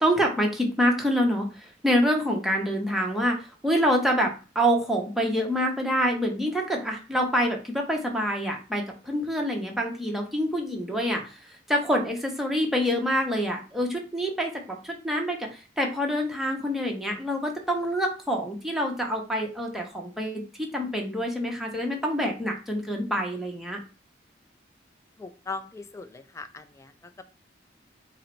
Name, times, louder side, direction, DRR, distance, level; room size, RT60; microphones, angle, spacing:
voice 1, 0.0-11.4 11.7-23.8, equal, ahead, 0 dB, 0.7 m, -26 dB
voice 2, 25.2-27.2, left 3 dB, 15° left, 9 dB, 0.3 m, -39 dB
3.8 x 2.0 x 4.4 m, 0.34 s
head